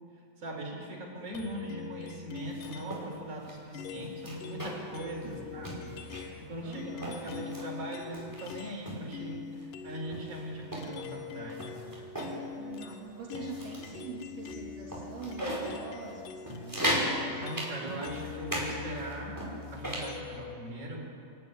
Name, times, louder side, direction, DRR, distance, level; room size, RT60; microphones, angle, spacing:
voice 1, 0.4-11.8 17.4-19.4 19.7-21.1, right 1 dB, 45° right, -2 dB, 5.5 m, -40 dB
sound 1, 1.3-3.1 3.7-8.8 9.1-20.6, left 7 dB, 85° left, 2.7 m, -44 dB
sound 2, 2.3-3.0 3.4-3.5 4.0-5.0 5.2-5.4 5.6-6.4 6.8-7.7 8.1-9.0 9.6-9.7 10.1-12.4 12.7-12.9 13.3-14.0 14.4-14.5 14.9-15.7 16.1-16.2 16.5-17.1 17.5-18.7 19.0-20.1, equal, 5° right, 4.9 m, -36 dB
voice 2, 5.2-5.7 6.6-7.3 12.6-17.5, right 5 dB, 75° right, -4 dB, 4.3 m, -44 dB
27.5 x 12.5 x 9.5 m, 2.4 s
omnidirectional pair, 3.7 m